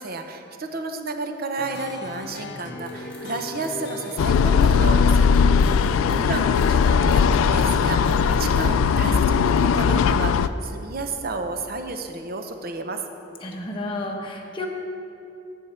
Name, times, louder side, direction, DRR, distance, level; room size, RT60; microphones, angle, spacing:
voice 1, 0.0-5.3 5.7-5.8 6.1-13.0, right 3 dB, 50° right, 6 dB, 0.7 m, -32 dB
sound 1, 1.6-8.1, left 3 dB, 60° left, 0.7 m, -38 dB
sound 2, 2.8-8.8, equal, 5° left, 1.8 m, -38 dB
sound 3, 4.2-10.5, left 6 dB, 85° left, 0.3 m, -19 dB
voice 2, 5.6-6.4 13.4-14.7, left 1 dB, 25° left, 0 dB, 1.0 m, -33 dB
14.5 x 6.4 x 4.4 m, 2.7 s
head